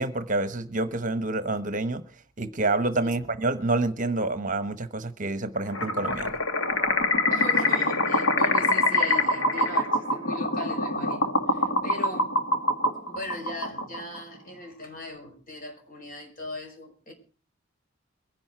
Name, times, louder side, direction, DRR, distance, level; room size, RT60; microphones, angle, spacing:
voice 1, 0.0-2.0 2.4-6.4, right 2 dB, 40° right, 1.1 m, -27 dB
sound 1, 5.7-14.2, left 2 dB, 75° left, 2.2 m, -25 dB
voice 2, 7.3-12.3 13.1-17.1, left 2 dB, 45° left, 5.9 m, -39 dB
23.0 x 11.0 x 4.5 m
head